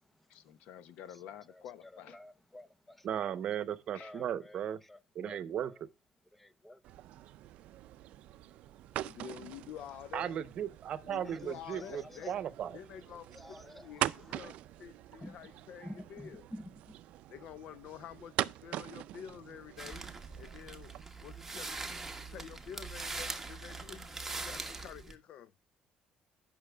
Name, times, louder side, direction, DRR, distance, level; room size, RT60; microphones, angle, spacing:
voice 1, 0.3-2.2 3.9-4.1, left 10 dB, 85° left, 0.8 m, -50 dB
voice 2, 2.1-3.1 4.0-4.6 4.9-5.7 6.3-6.8 11.2-11.4 11.7-12.4 13.3-14.5 15.2-15.4 15.8-16.7, left 1 dB, 10° left, 0.6 m, -50 dB
voice 3, 3.0-4.8 5.1-5.9 10.1-12.8, right 9 dB, 55° right, 0.8 m, -36 dB
sound 1, 6.8-21.0, right 14 dB, 75° right, 0.4 m, -43 dB
voice 4, 9.0-10.4 11.0-12.3 12.7-16.5 17.3-20.9 21.2-25.5, left 9 dB, 65° left, 0.5 m, -49 dB
sound 2, 19.8-25.1, right 3 dB, 10° right, 1.1 m, -42 dB
15.5 x 5.8 x 2.3 m
cardioid pair, 120°, 2 cm